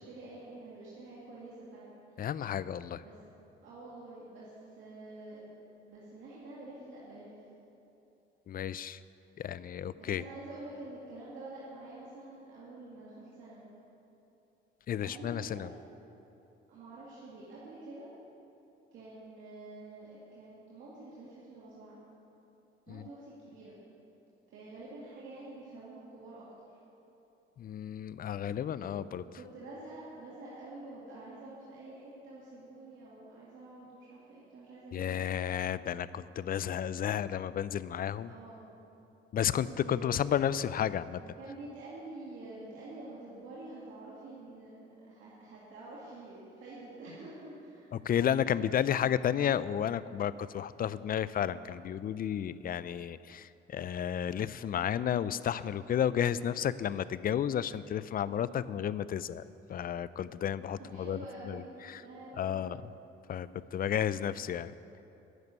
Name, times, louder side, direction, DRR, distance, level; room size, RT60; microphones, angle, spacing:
voice 1, 0.0-2.3 3.0-3.2 3.6-5.5 5.8-7.3 10.0-13.7 15.0-15.6 16.7-18.1 18.9-22.0 22.9-23.8 24.5-26.8 28.7-35.0 38.2-38.8 39.3-39.5 39.8-40.2 41.4-47.9 60.8-62.7, right 2 dB, 80° right, -8 dB, 2.3 m, -48 dB
voice 2, 2.2-3.0 8.5-9.0 9.4-10.2 14.9-15.7 22.9-23.0 27.6-29.2 34.9-38.3 39.3-41.2 47.9-59.4 59.7-61.2 61.4-62.0 62.4-62.8 63.3-64.7, left 9 dB, 45° left, 16 dB, 0.4 m, -32 dB
11.0 x 6.8 x 9.5 m, 2.9 s
cardioid pair, 90°, 20 cm